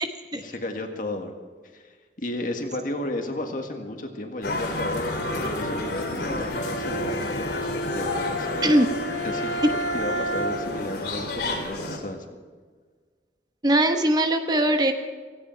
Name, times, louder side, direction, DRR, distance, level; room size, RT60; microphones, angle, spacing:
voice 1, 0.3-1.4 1.7-8.7 9.2-9.6 9.9-12.4, left 1 dB, 50° left, 4 dB, 1.8 m, -33 dB
sound 1, 4.4-12.0, left 2 dB, 70° left, 2.9 m, -30 dB
Bowed string instrument, 6.5-10.9, equal, 85° left, 1.7 m, -31 dB
voice 2, 13.6-14.9, right 1 dB, 25° right, 5 dB, 1.0 m, -20 dB
17.0 x 16.5 x 4.6 m, 1.5 s
head